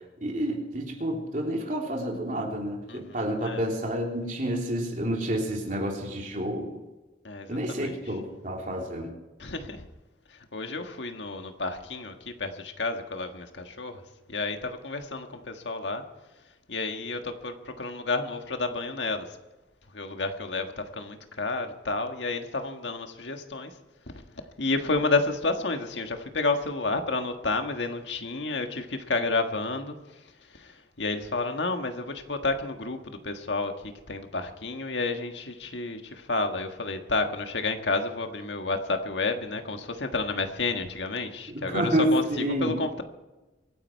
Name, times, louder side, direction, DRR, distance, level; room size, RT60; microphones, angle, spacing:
voice 1, 0.2-6.7 7.5-9.1 41.5-42.8, right 1 dB, 45° right, 0 dB, 3.3 m, -29 dB
voice 2, 2.9-3.6 7.2-8.0 9.4-9.9 10.3-14.0 14.3-16.0 16.7-19.4 19.9-23.7 24.1-24.2 24.6-30.0 30.5-43.0, left 3 dB, 90° left, 6 dB, 1.6 m, -30 dB
24.5 x 9.9 x 4.6 m, 1.1 s
head